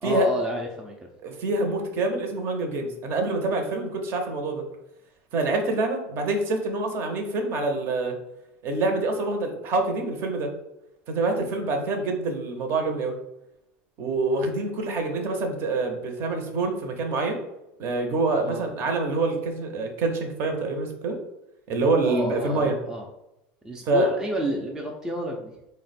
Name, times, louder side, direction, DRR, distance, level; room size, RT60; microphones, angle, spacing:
voice 1, 0.0-1.0 11.4-11.6 18.5-18.6 22.0-23.0 23.6-25.5, right 1 dB, 10° right, -1 dB, 0.5 m, -30 dB
voice 2, 1.2-4.6 5.3-8.2 8.6-10.5 11.1-13.1 14.0-17.4 17.8-21.2 21.7-22.8 23.9-24.2, right 2 dB, 45° right, 4 dB, 0.8 m, -26 dB
4.1 x 2.1 x 4.1 m, 0.86 s
supercardioid pair, 140°, 5 cm